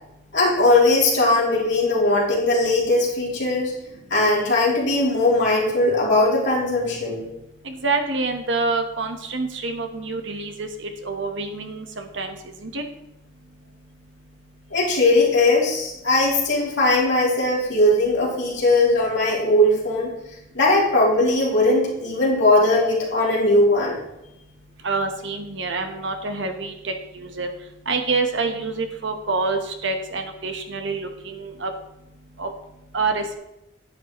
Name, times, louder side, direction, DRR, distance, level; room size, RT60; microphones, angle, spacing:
voice 1, 0.3-3.7 4.1-7.3 14.7-20.1 20.5-24.0, left 2 dB, 60° left, -4 dB, 3.1 m, -19 dB
voice 2, 7.6-12.4 12.6-12.8 24.8-27.5 27.9-31.7 32.4-32.5 32.9-33.2, right 3 dB, 65° right, 5 dB, 1.2 m, -27 dB
10.0 x 9.0 x 3.1 m, 0.88 s
head